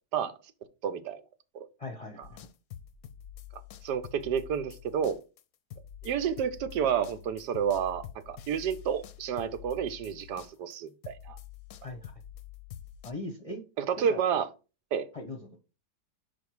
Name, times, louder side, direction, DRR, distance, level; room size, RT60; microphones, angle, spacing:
voice 1, 0.8-1.2 1.5-1.7 3.8-5.2 6.0-11.4 13.8-14.5 14.9-15.1, right 8 dB, 90° right, 1.3 m, -30 dB
voice 2, 1.8-2.5 11.8-12.1 13.0-13.6 14.0-14.2 15.1-15.5, left 2 dB, 30° left, 0.7 m, -39 dB
sound 1, 2.2-10.8 11.0-13.1, left 10 dB, 70° left, 0.9 m, -47 dB
5.1 x 4.5 x 4.7 m
omnidirectional pair, 1.8 m